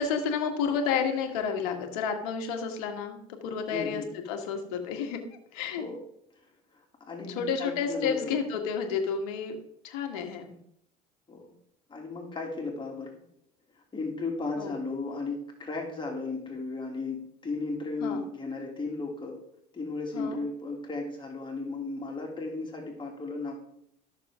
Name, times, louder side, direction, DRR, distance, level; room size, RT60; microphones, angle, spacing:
voice 1, 0.0-5.2 5.5-5.8 7.3-9.6 9.8-10.5 14.6-14.7 18.0-18.3 20.1-20.4, left 6 dB, 80° left, 4 dB, 1.8 m, -31 dB
voice 2, 3.7-4.1 5.8-6.0 6.7-6.8 7.1-8.2 10.5-10.6 11.3-11.5 11.9-13.1 13.9-19.4 19.7-23.7, left 3 dB, 25° left, 0 dB, 2.7 m, -35 dB
13.5 x 6.7 x 3.7 m, 0.72 s
supercardioid pair, 85°, 19 cm